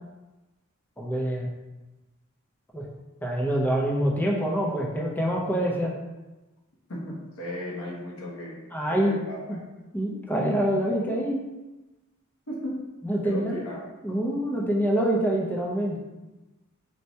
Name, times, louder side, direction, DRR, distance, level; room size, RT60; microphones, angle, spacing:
voice 1, 1.0-1.5 2.7-2.9 3.2-5.9 8.7-9.2 9.5-9.6 9.9-11.4 13.0-13.6 14.0-16.0, right 1 dB, 10° left, -2 dB, 0.5 m, -26 dB
voice 2, 6.9-8.6 8.9-9.7 12.5-12.8 13.2-13.8, left 1 dB, 75° left, -3 dB, 0.9 m, -36 dB
4.4 x 2.1 x 2.7 m, 1.1 s
head